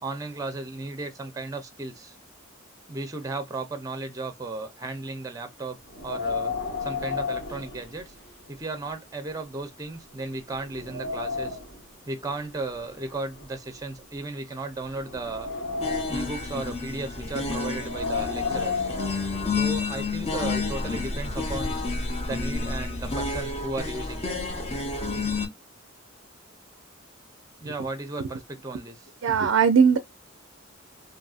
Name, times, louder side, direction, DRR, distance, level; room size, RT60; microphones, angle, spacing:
voice 1, 0.0-2.2 2.9-5.8 6.0-6.5 6.8-8.1 8.5-11.6 12.1-15.5 16.1-18.9 19.6-21.9 22.2-24.3 27.6-29.1, right 2 dB, 15° right, 0.5 m, -35 dB
Wind, 5.9-8.5 8.9-9.0 9.6-9.7 10.2-11.8 12.7-14.2 14.8-16.4 17.7-19.8, left 4 dB, 55° left, 1.1 m, -33 dB
sound 1, 15.8-25.5, left 3 dB, 30° left, 0.6 m, -30 dB
voice 2, 29.2-30.0, right 6 dB, 75° right, 0.4 m, -18 dB
2.7 x 2.6 x 2.3 m
head